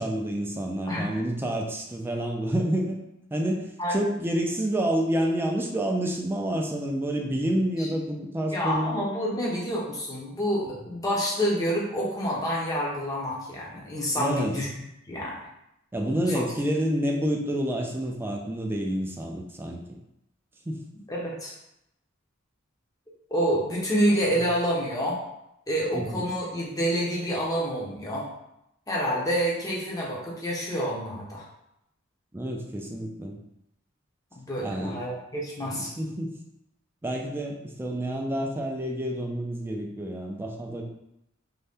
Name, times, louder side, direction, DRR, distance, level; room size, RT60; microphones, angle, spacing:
voice 1, 0.0-3.0 3.3-9.0 14.1-14.6 15.9-19.8 20.7-20.8 25.9-26.3 32.3-33.4 34.6-35.0 35.7-36.3 37.0-40.8, right 1 dB, 10° right, 1 dB, 0.3 m, -28 dB
voice 2, 0.9-1.2 3.8-4.0 7.8-7.9 8.5-14.7 15.1-15.4 16.3-16.4 21.1-21.5 23.3-25.2 25.7-28.3 28.9-31.5 34.4-35.9, equal, 20° left, -4 dB, 0.7 m, -28 dB
2.6 x 2.2 x 3.4 m, 0.83 s
head